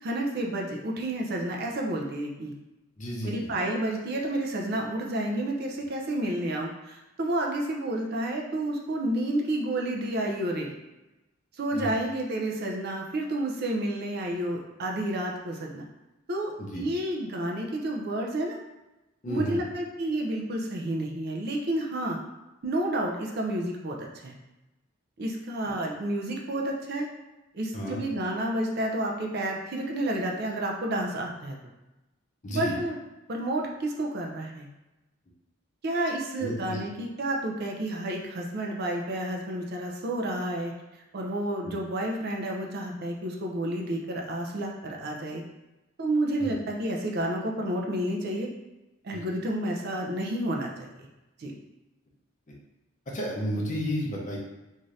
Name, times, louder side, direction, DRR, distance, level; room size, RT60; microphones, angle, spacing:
voice 1, 0.0-2.5 3.2-10.7 11.6-15.8 16.3-18.6 19.3-22.2 22.6-24.3 25.2-27.1 27.5-31.6 32.5-33.0 33.3-34.7 35.8-40.7 41.1-45.4 46.0-48.5 49.0-50.9 51.4-51.5, right 1 dB, 50° right, 0 dB, 0.4 m, -30 dB
voice 2, 3.0-3.5 11.8-11.9 16.6-16.8 19.2-19.6 27.7-28.0 32.4-32.7 36.4-36.8 46.4-46.5 49.1-49.2 53.1-54.4, equal, 40° left, -2 dB, 0.6 m, -32 dB
2.6 x 2.4 x 3.2 m, 1.0 s
head